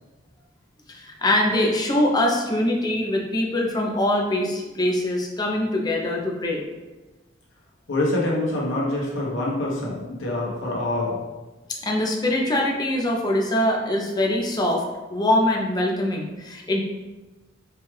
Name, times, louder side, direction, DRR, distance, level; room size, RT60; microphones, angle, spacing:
voice 1, 0.9-6.6 11.8-14.8 15.1-16.8, left 1 dB, 20° left, -1 dB, 0.5 m, -23 dB
voice 2, 7.9-11.2, left 1 dB, 85° left, -4 dB, 1.0 m, -25 dB
4.4 x 2.4 x 3.2 m, 1.2 s
head